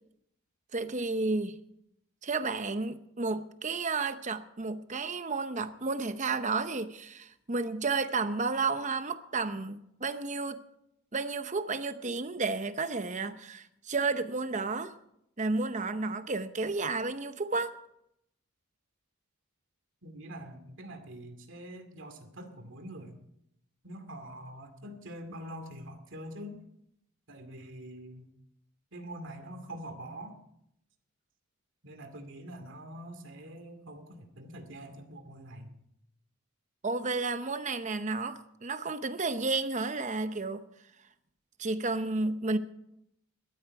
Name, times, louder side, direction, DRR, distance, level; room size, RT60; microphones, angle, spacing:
voice 1, 0.7-1.6 2.2-10.6 11.1-15.0 15.4-17.8 36.8-40.6 41.6-42.6, right 3 dB, 35° right, 0.8 m, -32 dB
voice 2, 20.0-23.2 23.8-26.6 27.3-28.3 28.9-30.3 31.8-35.7, right 1 dB, 55° right, 2.4 m, -45 dB
17.5 x 13.0 x 4.8 m
head